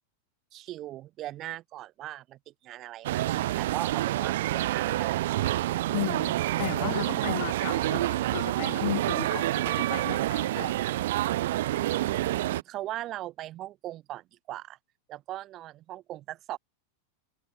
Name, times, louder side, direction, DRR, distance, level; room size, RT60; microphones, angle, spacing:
voice 1, 0.5-5.4 11.9-14.8 15.1-16.6, right 14 dB, 35° right, 2.7 m, -39 dB
sound 1, 3.0-12.6, right 15 dB, 55° right, 0.4 m, -28 dB
voice 2, 5.9-10.7, left 19 dB, 50° left, 0.9 m, -35 dB
figure-of-eight pair, 90°, 0 cm